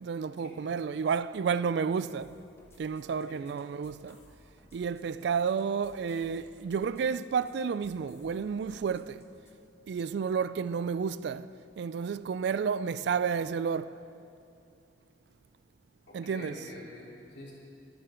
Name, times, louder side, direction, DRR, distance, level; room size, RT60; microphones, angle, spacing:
voice 1, 0.0-2.3 2.8-4.2 4.7-9.2 9.9-14.0 16.1-16.6, right 6 dB, 65° right, 0.3 m, -31 dB
sound 1, 2.2-9.5, left 1 dB, 15° left, 1.2 m, -60 dB
voice 2, 16.1-17.5, left 1 dB, 65° left, 3.5 m, -46 dB
24.0 x 8.7 x 3.9 m
head